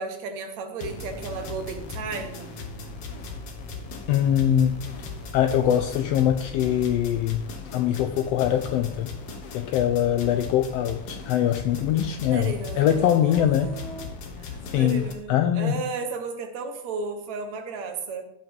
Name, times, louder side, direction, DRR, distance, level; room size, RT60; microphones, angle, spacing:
voice 1, 0.0-2.5 12.3-14.1 14.4-18.2, right 4 dB, 70° right, 6 dB, 2.5 m, -34 dB
sound 1, 0.8-15.1, left 4 dB, 60° left, 2.1 m, -38 dB
voice 2, 4.1-4.8 5.3-7.4 7.7-9.1 9.5-13.8 14.7-15.8, left 10 dB, 90° left, 8 dB, 1.4 m, -23 dB
13.5 x 5.8 x 5.3 m, 0.83 s
omnidirectional pair, 3.4 m